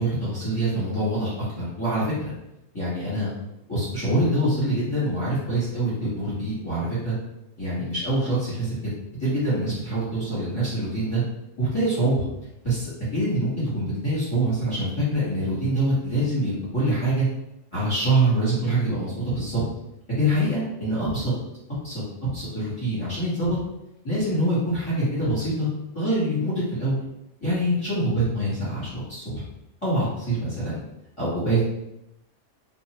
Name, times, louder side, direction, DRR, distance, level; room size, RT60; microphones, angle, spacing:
voice 1, 0.0-2.3 2.7-3.3 3.7-7.1 7.6-8.7 9.2-11.2 11.6-12.2 12.6-17.3 17.7-19.6 20.1-21.3 21.8-23.6 24.0-25.7 25.9-27.0 27.4-29.4 29.8-30.8 31.2-31.7, right 1 dB, 25° left, -11 dB, 1.3 m, -25 dB
2.4 x 2.4 x 3.0 m, 0.88 s
omnidirectional pair, 1.2 m